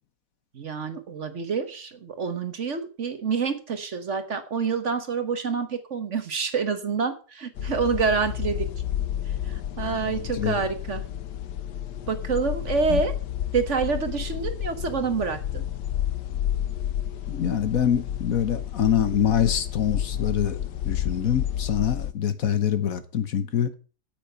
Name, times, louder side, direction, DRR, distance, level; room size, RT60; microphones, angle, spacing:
voice 1, 0.5-8.7 9.3-11.0 12.1-13.1 13.5-15.7, right 5 dB, 50° right, 1.3 m, -27 dB
sound 1, 7.6-22.1, left 11 dB, 85° left, 1.5 m, -31 dB
voice 2, 9.9-10.6 12.9-13.0 17.3-23.7, left 9 dB, 60° left, 1.4 m, -25 dB
9.0 x 8.5 x 6.7 m
omnidirectional pair, 1.8 m